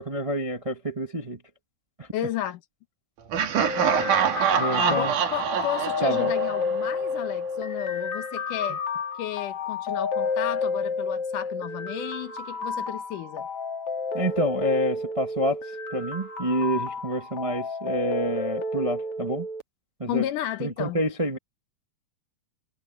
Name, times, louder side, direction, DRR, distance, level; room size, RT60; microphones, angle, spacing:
voice 1, 0.0-1.4 2.0-2.1 4.6-5.1 6.0-6.3 14.1-15.6 15.9-19.5 20.0-20.2 20.6-21.4, equal, 65° right, 0.3 m, -28 dB
voice 2, 2.1-2.6 4.8-8.8 9.2-13.5 20.1-21.0, left 11 dB, 90° left, 2.8 m, -33 dB
Laughter, 3.3-7.2, right 8 dB, 90° right, 3.4 m, -25 dB
sound 1, 3.6-19.6, left 4 dB, 50° left, 2.8 m, -31 dB
omnidirectional pair, 3.5 m